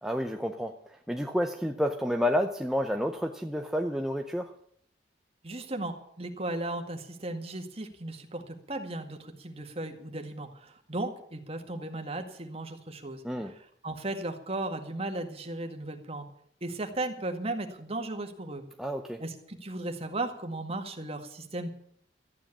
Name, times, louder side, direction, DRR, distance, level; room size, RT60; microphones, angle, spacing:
voice 1, 0.0-4.5 13.2-13.5 18.8-19.2, equal, 5° right, 4 dB, 0.7 m, -30 dB
voice 2, 5.4-16.3 16.6-18.6 19.2-21.7, right 2 dB, 35° right, 5 dB, 2.0 m, -36 dB
14.0 x 9.6 x 8.6 m, 0.63 s
head